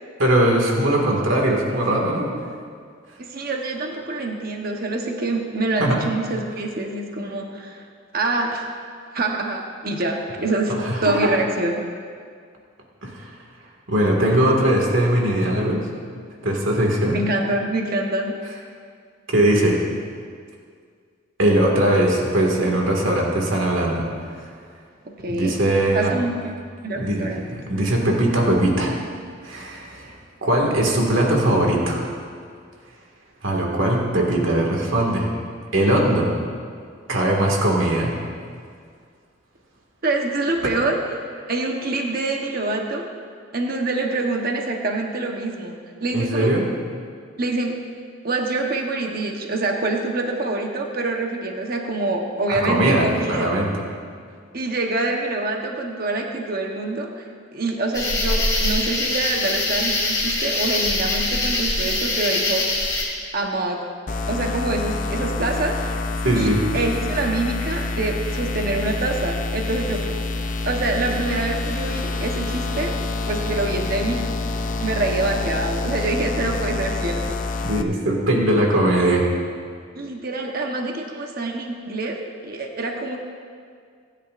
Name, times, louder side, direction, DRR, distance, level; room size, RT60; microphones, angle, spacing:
voice 1, 0.2-2.3 5.8-6.0 10.7-11.3 13.0-13.3 13.9-15.8 16.4-17.2 19.3-19.8 21.4-24.1 24.4-24.5 25.3-26.1 27.0-29.0 29.4-30.1 30.4-32.1 33.4-35.3 35.7-36.3 37.1-38.2 46.1-46.7 52.6-53.7 66.2-66.6 77.6-79.3, right 1 dB, 85° right, -1 dB, 2.0 m, -20 dB
voice 2, 3.2-7.9 8.1-8.7 9.1-10.7 11.0-11.9 17.1-18.4 25.0-25.6 25.9-26.5 26.8-27.6 40.0-41.0 41.5-43.1 43.5-46.5 47.4-47.8 48.2-53.4 54.5-57.2 57.5-62.7 63.3-63.9 64.3-65.8 66.3-70.1 70.6-73.0 73.3-74.3 74.8-77.4 80.0-83.2, right 2 dB, 50° right, 2 dB, 1.0 m, -25 dB
sound 1, 57.9-63.0, left 2 dB, 20° left, 2.9 m, -23 dB
sound 2, 64.1-77.8, left 3 dB, 40° left, 0.6 m, -27 dB
25.0 x 10.0 x 2.5 m, 2.1 s
head